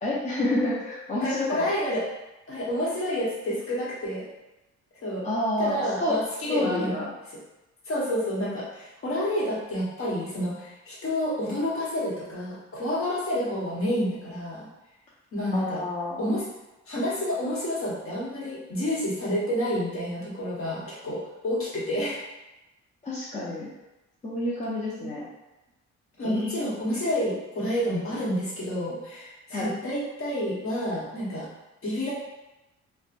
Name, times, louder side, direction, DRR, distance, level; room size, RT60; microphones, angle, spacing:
voice 1, 0.0-1.7 5.2-6.2 6.5-7.1 15.5-16.3 23.0-23.7 24.2-25.2 26.2-26.6 29.5-29.7, left 1 dB, 25° left, -7 dB, 0.6 m, -29 dB
voice 2, 1.2-2.1 2.5-4.3 5.0-5.3 5.6-7.0 7.9-14.7 15.3-15.8 16.2-16.4 16.9-22.2 23.3-23.4 25.0-25.1 26.2-31.5 31.8-32.1, equal, 45° left, -6 dB, 1.1 m, -29 dB
2.9 x 2.2 x 2.5 m, 1.0 s
cardioid pair, 90°, 30 cm